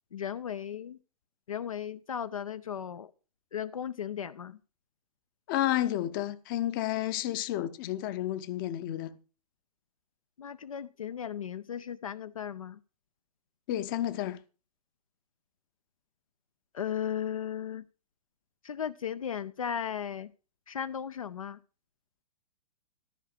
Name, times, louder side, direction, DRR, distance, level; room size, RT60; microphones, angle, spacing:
voice 1, 0.1-1.0 1.5-3.1 3.5-4.6 10.4-12.8 16.7-17.8 18.6-20.3 20.7-21.6, left 8 dB, 65° left, 0.6 m, -36 dB
voice 2, 5.5-9.2 13.7-14.4, left 13 dB, 35° left, 0.8 m, -31 dB
13.5 x 5.7 x 6.4 m
figure-of-eight pair, 110°, 19 cm